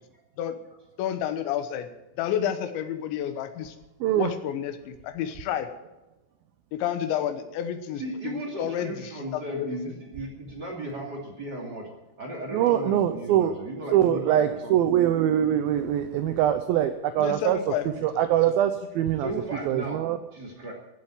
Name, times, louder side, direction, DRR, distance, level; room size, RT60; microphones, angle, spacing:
voice 1, 1.0-1.9 2.2-3.8 4.2-5.7 6.7-9.8 17.2-18.1, left 10 dB, 85° left, 9 dB, 3.4 m, -30 dB
voice 2, 4.0-4.3 12.5-13.5 13.9-17.6 18.0-19.3 19.7-20.2, right 11 dB, 90° right, 9 dB, 2.1 m, -23 dB
voice 3, 8.0-11.9 12.2-14.9 19.2-20.0 20.3-20.7, right 1 dB, 30° right, -1 dB, 2.4 m, -36 dB
15.5 x 7.7 x 8.9 m, 1.0 s
omnidirectional pair, 5.1 m